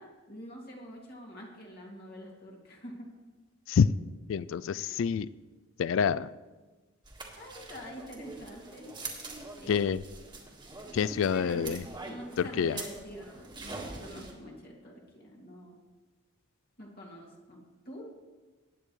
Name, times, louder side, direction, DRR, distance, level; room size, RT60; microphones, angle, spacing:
voice 1, 0.0-3.1 4.7-5.0 7.4-9.0 9.6-9.9 11.3-15.8 16.8-18.0, equal, 50° left, -2 dB, 2.4 m, -46 dB
voice 2, 4.3-5.3 5.8-6.3 9.7-10.0 10.9-11.8 12.6-12.8, left 6 dB, 70° left, 18 dB, 0.3 m, -27 dB
sound 1, 7.0-14.3, right 3 dB, 20° right, 1.7 m, -44 dB
19.5 x 8.8 x 3.2 m, 1.2 s
head